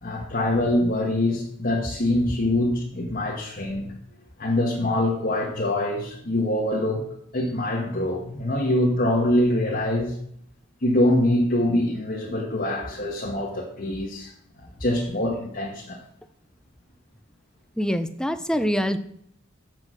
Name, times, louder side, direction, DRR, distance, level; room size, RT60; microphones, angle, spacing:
voice 1, 0.0-3.9 4.4-7.1 7.3-10.1 10.8-14.3 14.8-16.0, left 1 dB, 40° left, -3 dB, 1.4 m, -24 dB
voice 2, 17.8-19.0, equal, 5° left, 10 dB, 0.5 m, -24 dB
7.5 x 6.2 x 6.3 m, 0.70 s
head